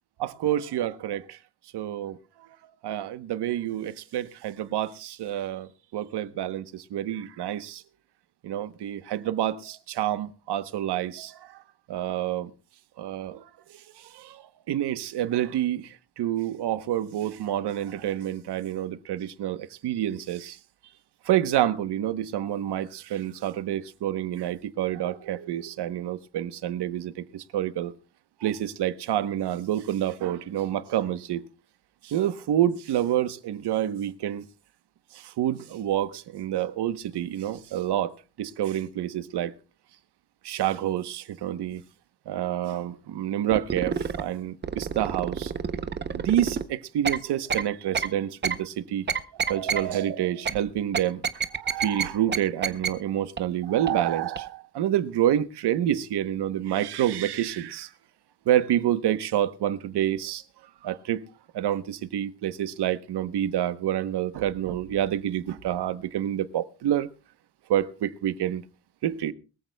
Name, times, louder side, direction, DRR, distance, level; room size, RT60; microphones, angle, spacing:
voice 1, 0.2-1.4 1.7-2.2 2.8-7.8 8.4-11.6 11.9-12.5 13.0-13.5 14.0-20.6 21.2-27.9 28.4-31.4 32.0-34.4 35.1-39.5 40.4-41.8 42.3-45.5 46.1-49.1 49.4-57.9 58.5-60.4 60.8-61.2 61.5-67.1 67.7-68.6 69.0-69.3, right 11 dB, 65° right, 1.0 m, -28 dB
sound 1, 43.5-44.2 44.6-46.6 47.0-47.2 47.5-47.6 47.9-48.1 48.4-48.6 49.1-49.8 50.4-50.5 50.9-52.0 52.3-52.4 52.6-52.9 53.4-53.5 53.9-54.0 54.3-54.4, right 6 dB, 25° right, 0.7 m, -27 dB
22.5 x 14.5 x 2.2 m
cardioid pair, 155°, 43 cm